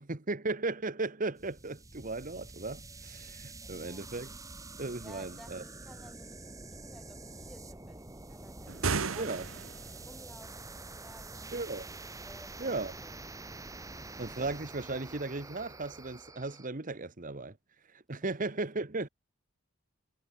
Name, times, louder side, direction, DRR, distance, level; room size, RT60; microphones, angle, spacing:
voice 1, 0.0-4.3 4.8-5.6 9.2-9.5 11.5-11.9 12.6-12.9 14.2-17.6 17.9-19.1, right 3 dB, 40° right, 1.3 m, -36 dB
sound 1, 1.4-16.7, right 2 dB, 15° right, 1.4 m, -47 dB
voice 2, 3.6-4.1 5.0-11.6 12.2-13.3 18.2-18.3, equal, ahead, 6.8 m, -56 dB
sound 2, 8.7-10.0, right 4 dB, 80° right, 1.3 m, -33 dB
head